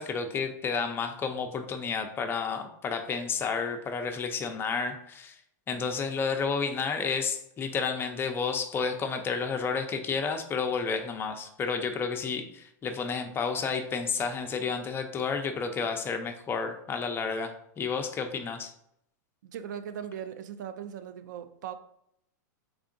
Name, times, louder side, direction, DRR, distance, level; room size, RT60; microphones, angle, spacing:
voice 1, 0.0-5.4 5.7-18.7, left 5 dB, 20° left, 5 dB, 0.5 m, -31 dB
voice 2, 19.4-21.7, right 9 dB, 75° right, 10 dB, 0.4 m, -39 dB
3.6 x 3.4 x 2.5 m, 0.73 s
hypercardioid pair, 120°, 10 cm